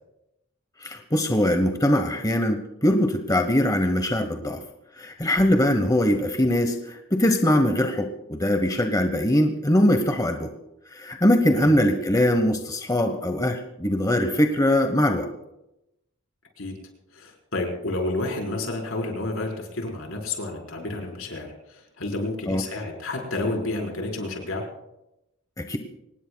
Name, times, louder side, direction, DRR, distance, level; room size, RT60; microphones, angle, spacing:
voice 1, 0.8-4.6 5.0-10.5 10.9-15.3 22.5-22.6 25.6-25.8, left 1 dB, 15° left, 6 dB, 1.0 m, -22 dB
voice 2, 17.1-24.6, left 2 dB, 75° left, 1 dB, 4.3 m, -30 dB
25.0 x 19.0 x 2.3 m, 0.88 s
head